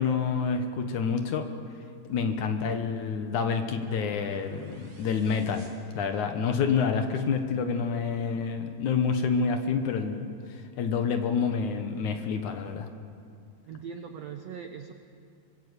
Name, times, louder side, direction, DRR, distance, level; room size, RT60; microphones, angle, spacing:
voice 1, 0.0-1.5 2.1-5.7 6.0-12.9, left 5 dB, 60° left, 6 dB, 2.4 m, -28 dB
sound 1, 2.1-6.7, right 1 dB, 65° right, 6.6 m, -55 dB
voice 2, 13.7-14.9, right 7 dB, 85° right, 6 dB, 1.4 m, -40 dB
24.5 x 20.5 x 8.3 m, 2.4 s
omnidirectional pair, 4.4 m